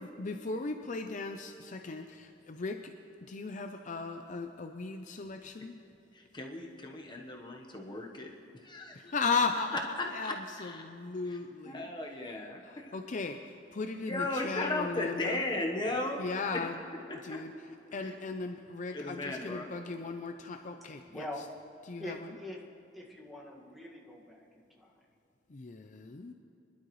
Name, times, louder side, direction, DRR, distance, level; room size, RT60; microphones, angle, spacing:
voice 1, 0.0-2.9 3.3-5.8 8.9-11.9 12.3-15.4 16.2-16.8 17.2-17.5 17.9-21.3 21.9-22.3 25.5-26.3, left 4 dB, 45° left, 6 dB, 0.5 m, -37 dB
voice 2, 6.1-8.3 8.6-9.0 10.2-10.9 11.3-11.4 11.6-12.9 14.1-16.4 17.3-17.4 17.9-18.1 18.9-19.7, left 2 dB, 25° left, 1 dB, 1.1 m, -36 dB
voice 3, 21.1-21.5 22.0-22.6 22.9-24.9, left 1 dB, ahead, -4 dB, 1.8 m, -43 dB
24.0 x 12.0 x 3.1 m, 2.9 s
head